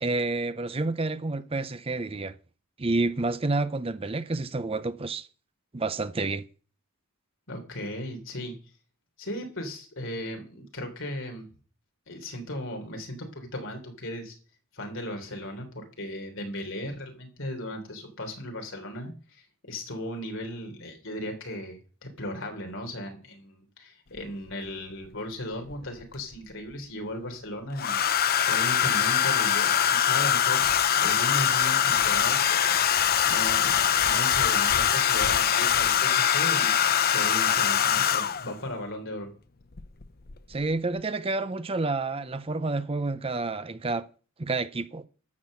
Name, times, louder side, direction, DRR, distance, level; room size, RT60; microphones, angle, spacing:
voice 1, 0.0-2.3 2.8-5.3 5.7-6.4 40.5-44.1 44.4-45.0, right 3 dB, 25° right, 0.6 m, -29 dB
voice 2, 7.5-8.5 9.2-11.5 12.1-14.4 14.7-39.3, left 1 dB, 60° left, 3.4 m, -37 dB
Domestic sounds home sounds, 24.2-24.3 25.7-26.4 27.8-38.5 39.8-40.0 40.3-40.7, left 9 dB, 45° left, 0.7 m, -23 dB
13.5 x 6.2 x 7.6 m
head